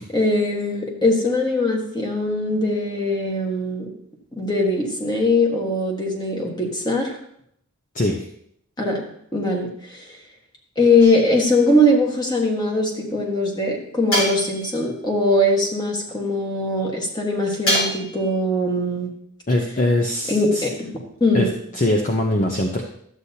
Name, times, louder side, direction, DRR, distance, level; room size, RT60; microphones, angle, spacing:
voice 1, 0.1-3.9 4.4-7.2 8.8-9.0 9.3-10.1 10.8-19.1 20.3-20.9 21.2-21.5, left 1 dB, 20° left, -1 dB, 1.5 m, -21 dB
voice 2, 7.9-8.3 19.5-20.6 21.3-22.8, left 1 dB, 35° left, 2 dB, 0.7 m, -22 dB
sound 1, 11.0-11.7 14.1-14.9 17.7-18.3, equal, 65° left, 3.8 m, -25 dB
12.0 x 8.0 x 2.8 m, 0.70 s
head